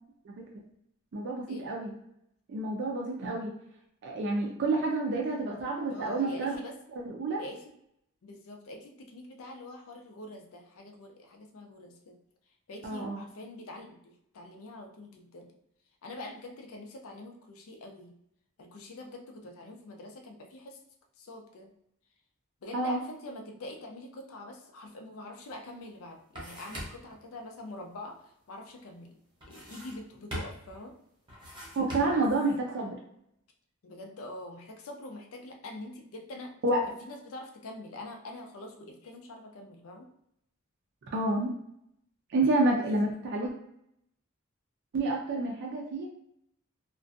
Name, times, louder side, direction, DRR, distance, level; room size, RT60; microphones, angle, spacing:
voice 1, 1.1-1.9 2.5-3.6 4.0-6.6 7.1-7.4 12.8-13.2 22.7-23.0 31.8-33.0 36.6-36.9 41.1-41.5 42.3-43.5 44.9-46.1, right 2 dB, 55° right, -1 dB, 0.4 m, -29 dB
voice 2, 5.9-6.8 7.4-7.6 8.2-12.2 12.7-15.5 16.0-18.1 18.6-20.8 21.2-21.7 22.6-31.0 32.0-32.2 33.8-36.6 37.0-40.1, left 1 dB, 80° left, 2 dB, 0.5 m, -45 dB
sound 1, 25.5-25.6 25.9-27.2 29.4-30.1 30.3-30.8 31.3-32.3, equal, 25° right, 0.7 m, -41 dB
2.5 x 2.1 x 2.5 m, 0.75 s
head